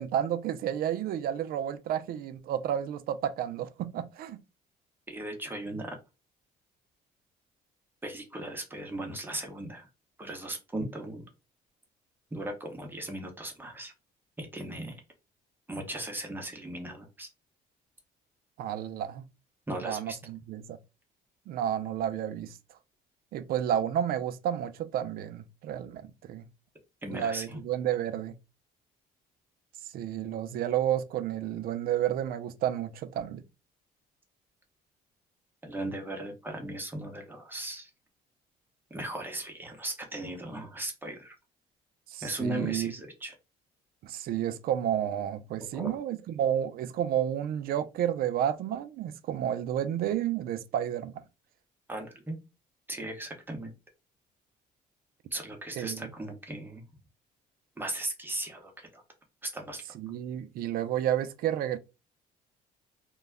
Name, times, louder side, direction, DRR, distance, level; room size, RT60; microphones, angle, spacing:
voice 1, 0.0-4.4 18.6-19.3 19.8-20.8 21.5-22.6 23.3-26.4 27.1-28.4 29.9-33.4 42.1-42.9 44.0-51.2 55.8-56.0 59.9-61.8, right 10 dB, 60° right, 0.4 m, -31 dB
voice 2, 5.1-6.0 8.0-9.9 10.2-11.3 12.3-13.9 14.4-15.0 15.7-17.3 19.7-20.2 27.0-27.6 35.6-37.9 38.9-41.3 42.2-43.3 45.7-46.0 51.9-52.4 52.9-53.7 55.3-56.8 57.8-59.0 59.4-59.8, right 1 dB, 10° right, 0.7 m, -37 dB
2.2 x 2.0 x 3.4 m
cardioid pair, 110°, 17 cm